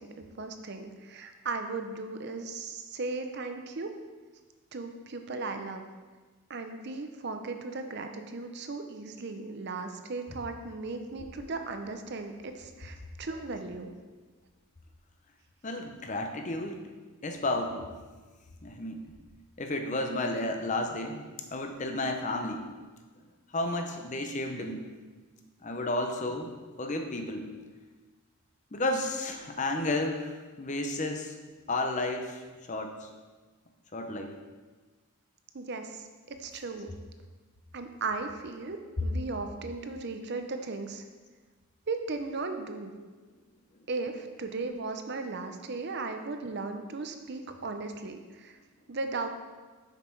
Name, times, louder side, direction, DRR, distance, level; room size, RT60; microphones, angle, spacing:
voice 1, 0.0-3.9 4.7-5.8 6.5-13.9 35.5-36.9 37.7-41.0 41.9-42.9 43.9-48.5 48.9-49.3, right 3 dB, 50° right, 6 dB, 0.6 m, -37 dB
voice 2, 15.6-16.8 17.2-17.9 18.6-19.0 19.6-21.2 21.5-22.7 23.5-24.8 25.6-27.5 28.7-31.3 31.7-32.4 32.7-33.1 33.9-34.3, left 2 dB, 35° left, 4 dB, 0.7 m, -32 dB
6.7 x 6.5 x 4.6 m, 1.4 s
head